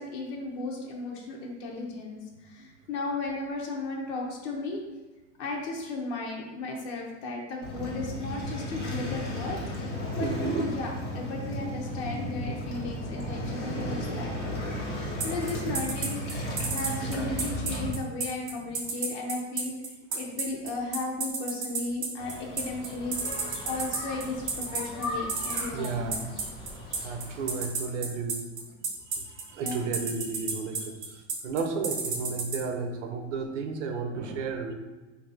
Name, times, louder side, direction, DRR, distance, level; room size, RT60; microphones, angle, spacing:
voice 1, 0.0-4.8 5.4-14.6 14.9-16.2 16.7-19.7 20.1-26.3 29.6-29.8, left 3 dB, 70° left, -1 dB, 0.8 m, -35 dB
Waves surf, 7.6-17.9, equal, 90° left, 1.5 m, -34 dB
voice 2, 10.2-10.6 20.1-20.2 25.7-26.2 27.0-28.4 29.1-34.7, right 4 dB, 90° right, 5 dB, 0.7 m, -33 dB
sound 1, 15.2-32.6, right 5 dB, 30° right, 0.9 m, -30 dB
sound 2, 22.2-27.7, left 1 dB, 15° left, 0.5 m, -40 dB
3.2 x 2.7 x 3.9 m, 1.2 s
supercardioid pair, 145°, 35 cm